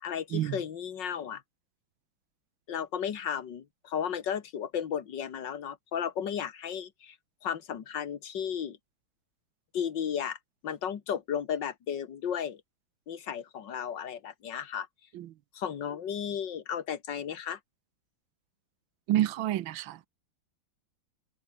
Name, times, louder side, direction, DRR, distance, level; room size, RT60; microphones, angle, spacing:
voice 1, 0.0-1.4 2.7-7.2 7.4-8.8 9.7-10.4 10.6-12.6 13.1-14.9 15.5-17.6, left 8 dB, 65° left, 2.2 m, -34 dB
voice 2, 19.1-20.1, right 13 dB, 80° right, 1.6 m, -29 dB
omnidirectional pair, 2.1 m